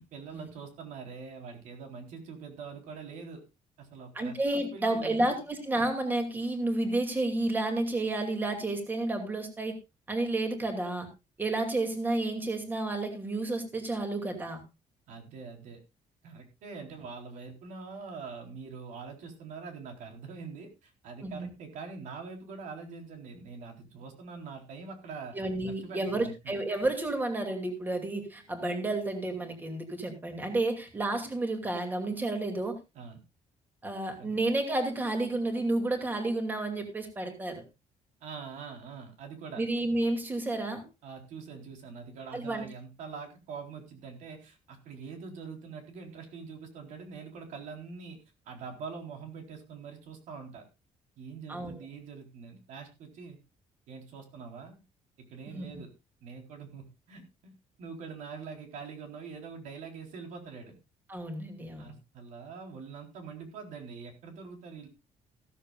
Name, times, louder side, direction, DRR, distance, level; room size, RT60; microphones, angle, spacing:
voice 1, 0.0-3.4 3.8-5.3 15.1-15.8 16.2-25.4 25.6-26.3 32.9-33.2 34.2-34.4 38.2-39.6 41.0-48.2 48.5-50.6 51.2-53.4 53.9-54.8 55.3-55.9 56.2-57.5 57.8-60.7 61.8-64.9, right 5 dB, 80° right, 4 dB, 4.0 m, -44 dB
voice 2, 4.1-9.8 10.1-11.1 11.4-14.6 16.9-17.0 21.2-21.5 25.3-32.8 33.8-37.6 39.6-40.9 42.3-42.7 51.5-51.7 55.5-55.8 61.1-61.9, right 2 dB, 15° right, 4 dB, 2.5 m, -31 dB
15.5 x 13.5 x 2.5 m, 0.25 s
cardioid pair, 170°, 12 cm